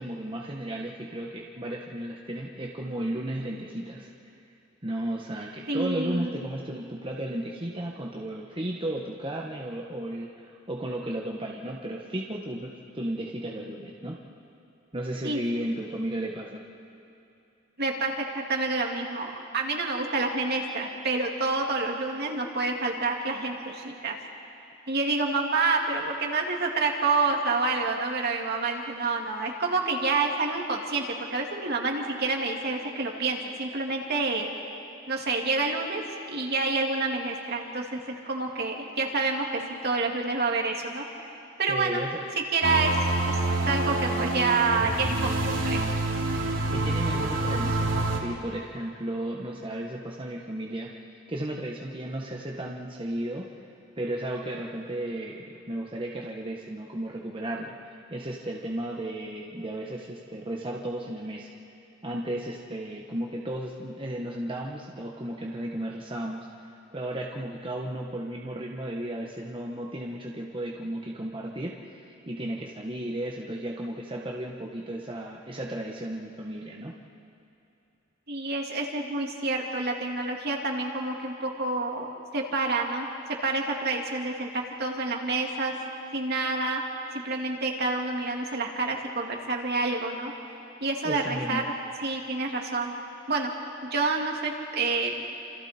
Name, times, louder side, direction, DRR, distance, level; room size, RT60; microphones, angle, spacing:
voice 1, 0.0-4.1 4.8-14.2 14.9-16.6 41.7-42.2 46.7-53.5 54.0-61.5 62.0-66.5 66.9-76.9 91.0-91.7, right 1 dB, 25° right, -2 dB, 1.4 m, -34 dB
voice 2, 5.7-6.3 15.2-15.4 17.8-24.2 24.9-34.5 35.1-36.0 36.3-41.0 41.6-42.0 42.5-42.9 43.3-43.4 43.7-45.8 78.3-85.7 86.1-86.8 87.1-90.3 90.8-91.6 92.0-92.9 93.3-93.5 93.8-95.3, right 3 dB, 55° right, 1 dB, 2.5 m, -28 dB
sound 1, 42.6-48.2, right 2 dB, 75° right, 3.0 m, -27 dB
29.5 x 27.0 x 4.4 m, 2.7 s
head